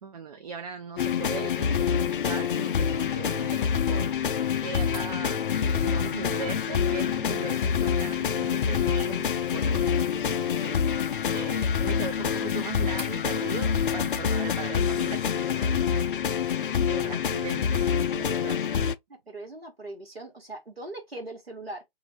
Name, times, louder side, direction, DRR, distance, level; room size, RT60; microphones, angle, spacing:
voice 1, 0.0-4.1 4.6-16.1 16.9-18.9, right 6 dB, 40° right, 0.5 m, -39 dB
sound 1, 1.0-19.0, left 7 dB, 60° left, 0.4 m, -26 dB
Mechanisms, 4.9-13.2, left 3 dB, 5° left, 0.6 m, -51 dB
voice 2, 19.1-21.8, right 2 dB, 90° right, 1.3 m, -40 dB
2.5 x 2.5 x 4.1 m
figure-of-eight pair, 130°, 29 cm